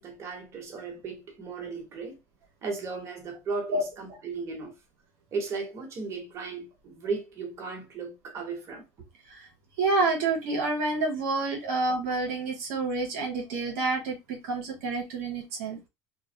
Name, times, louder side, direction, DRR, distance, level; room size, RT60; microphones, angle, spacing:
voice 1, 0.0-2.2 2.6-4.7 5.3-8.8 11.6-11.7, right 4 dB, 45° right, 1.1 m, -36 dB
voice 2, 9.8-15.8, right 3 dB, 85° right, 0.8 m, -28 dB
2.2 x 2.1 x 2.7 m
supercardioid pair, 100°, 7 cm